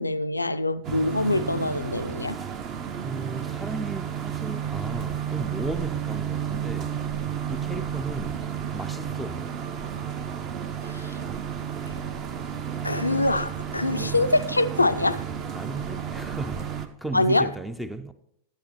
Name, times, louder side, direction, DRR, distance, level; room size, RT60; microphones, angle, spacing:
voice 1, 0.0-2.4 10.8-11.1 12.8-15.2 17.1-17.5, left 2 dB, 85° left, 0.3 m, -24 dB
sound 1, 0.8-16.9, right 8 dB, 35° right, 0.7 m, -32 dB
voice 2, 3.0-7.0 7.5-8.4 8.7-9.4 13.9-14.2 15.5-18.1, right 2 dB, 5° right, 0.4 m, -35 dB
12.0 x 8.2 x 3.1 m
figure-of-eight pair, 90°, 0 cm